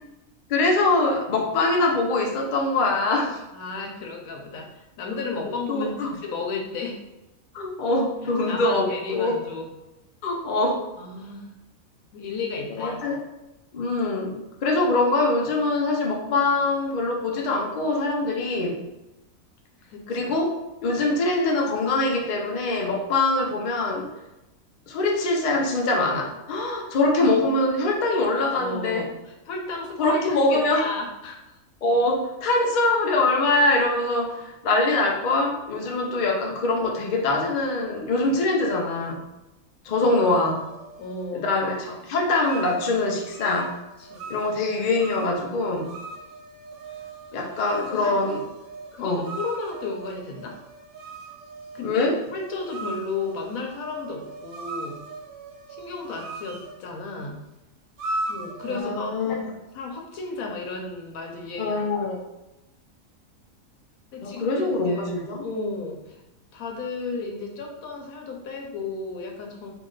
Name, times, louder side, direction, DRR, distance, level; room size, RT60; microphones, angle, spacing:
voice 1, 0.5-3.4 5.4-6.2 7.5-9.4 10.2-10.9 12.8-13.2 13.7-18.8 20.1-20.5 20.8-24.1 24.9-29.1 30.0-30.9 31.8-39.2 39.8-40.6 41.3-43.7 44.3-45.9 47.3-48.4 49.0-49.2 51.8-52.2 58.7-59.5 61.6-62.2 64.2-65.5, left 2 dB, 50° left, 0 dB, 0.6 m, -23 dB
voice 2, 3.5-7.0 8.5-9.7 11.0-11.5 12.1-13.0 19.9-20.3 28.5-31.6 36.1-36.3 41.0-41.6 44.0-44.3 47.3-48.3 48.9-50.6 51.7-52.0 52.3-55.0 55.7-57.4 58.3-59.1 59.7-61.8 64.1-65.2 65.4-66.2 66.5-69.7, left 3 dB, 80° left, 1 dB, 1.1 m, -34 dB
sound 1, 40.0-41.3 42.4-56.8 58.0-58.8, right 2 dB, 85° right, 1.1 m, -38 dB
3.1 x 2.9 x 3.8 m, 0.96 s
omnidirectional pair, 1.5 m